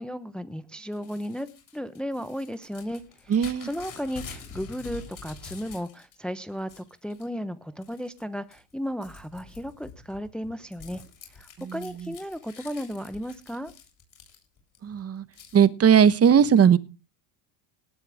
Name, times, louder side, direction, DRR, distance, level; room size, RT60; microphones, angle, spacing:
voice 1, 0.0-1.5 1.7-11.0 11.3-13.7, equal, ahead, 0.9 m, -35 dB
Crumpling crinkling / Tearing, 0.9-6.1 6.5-7.3 7.8-8.2 8.5-14.8 15.3-15.6, left 5 dB, 40° left, 7.9 m, -46 dB
voice 2, 3.3-3.7 14.8-15.2 15.5-16.8, right 8 dB, 30° right, 1.2 m, -18 dB
19.0 x 9.1 x 3.5 m
supercardioid pair, 95°, 48 cm